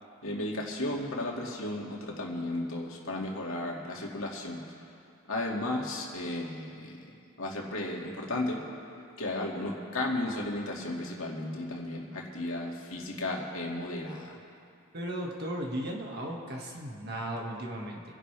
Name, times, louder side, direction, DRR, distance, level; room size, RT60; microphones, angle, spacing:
voice 1, 0.2-4.6 5.3-7.1 7.4-8.6 9.2-14.4, left 1 dB, 75° left, -2 dB, 2.3 m, -34 dB
voice 2, 14.9-18.0, right 1 dB, 50° right, -1 dB, 1.9 m, -36 dB
26.0 x 11.0 x 3.4 m, 2.4 s
head